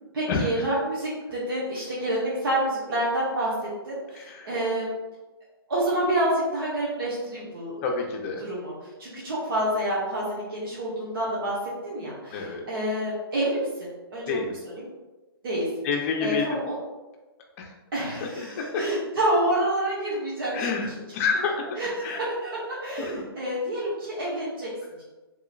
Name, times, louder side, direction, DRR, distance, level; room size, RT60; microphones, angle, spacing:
voice 1, 0.1-3.5 3.8-4.9 5.7-7.7 8.4-8.7 9.0-11.6 11.8-14.9 15.4-15.7 16.2-16.8 17.9-21.0 21.7-24.7, right 1 dB, 60° right, -8 dB, 1.0 m, -28 dB
voice 2, 4.1-4.5 7.8-8.4 12.3-12.6 14.3-14.6 15.8-16.4 17.6-17.7 20.5-21.7 22.0-22.2 23.0-23.3, left 5 dB, 35° left, 1 dB, 0.6 m, -28 dB
3.0 x 2.8 x 2.4 m, 1.1 s
hypercardioid pair, 145°, 13 cm